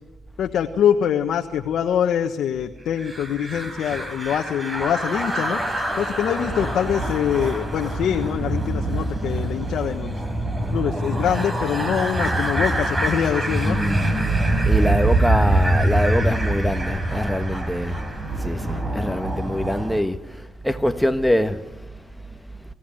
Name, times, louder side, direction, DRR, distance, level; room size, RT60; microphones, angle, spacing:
voice 1, 0.4-5.6 5.9-10.1 10.7-13.8, left 9 dB, 70° left, 1.2 m, -24 dB
sound 1, 3.0-20.0, right 1 dB, 20° right, 4.0 m, -24 dB
voice 2, 13.7-18.0 18.4-22.0, equal, 5° left, 1.4 m, -24 dB
25.5 x 16.0 x 9.0 m
cardioid pair, 90°, 0 cm